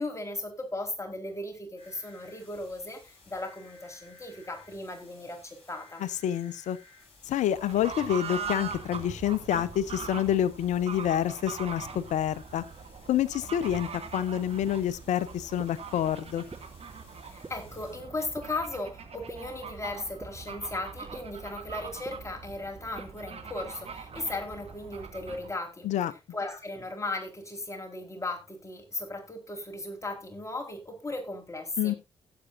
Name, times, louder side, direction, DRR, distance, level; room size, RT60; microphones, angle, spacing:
voice 1, 0.0-6.0 17.2-25.9 26.3-32.0, left 2 dB, 20° left, 4.4 m, -37 dB
sound 1, 1.8-18.0, left 3 dB, 45° left, 7.8 m, -57 dB
voice 2, 6.0-6.8 7.3-12.6 13.1-16.4 25.8-26.1 31.8-31.9, left 10 dB, 65° left, 0.8 m, -28 dB
Fowl / Bird, 7.5-25.5, right 6 dB, 50° right, 2.2 m, -42 dB
sound 2, 14.7-14.8 15.6-15.7 16.5-16.6 17.4-17.5 18.3-18.4 19.3-19.4 20.2-20.3 21.1-21.2 22.0-22.1 23.0-23.1, right 3 dB, 25° right, 1.2 m, -41 dB
17.0 x 8.1 x 2.6 m
hypercardioid pair, 40°, 13 cm